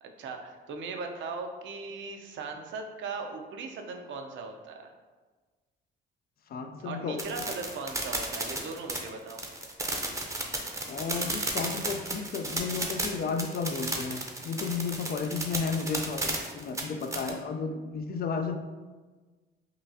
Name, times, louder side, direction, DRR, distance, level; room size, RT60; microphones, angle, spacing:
voice 1, 0.0-4.9 6.8-9.4, right 4 dB, 70° right, 4 dB, 0.6 m, -38 dB
voice 2, 6.5-7.3 10.9-18.6, left 5 dB, 50° left, 6 dB, 0.4 m, -33 dB
sound 1, 7.2-17.3, right 2 dB, 15° right, 0.6 m, -33 dB
5.6 x 2.3 x 2.6 m, 1.3 s
cardioid pair, 90°, 20 cm